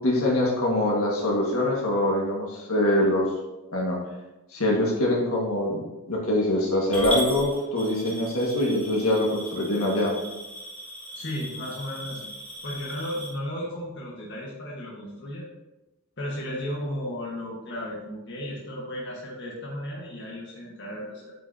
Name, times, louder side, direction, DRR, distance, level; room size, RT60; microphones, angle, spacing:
voice 1, 0.0-3.3 3.7-4.0 4.5-10.1, left 1 dB, 75° left, -2 dB, 1.7 m, -24 dB
Coin (dropping) / Glass, 6.9-13.3, equal, 5° left, 2.6 m, -37 dB
voice 2, 11.1-12.3 12.6-15.4 16.2-21.3, equal, 50° left, -4 dB, 1.4 m, -34 dB
9.1 x 5.9 x 2.8 m, 1.0 s
head